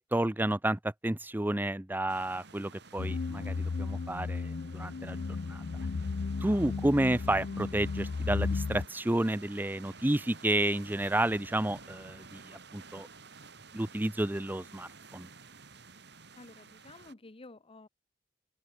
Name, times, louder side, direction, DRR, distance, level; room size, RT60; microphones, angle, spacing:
voice 1, 0.0-5.6 6.4-13.1 13.7-15.3, right 1 dB, 10° right, 0.7 m, -31 dB
sound 1, 2.1-17.1, right 4 dB, 65° right, 6.5 m, -52 dB
sound 2, 3.0-8.9, left 4 dB, 60° left, 0.5 m, -34 dB
voice 2, 16.4-17.9, left 2 dB, 30° left, 0.9 m, -51 dB
open air
head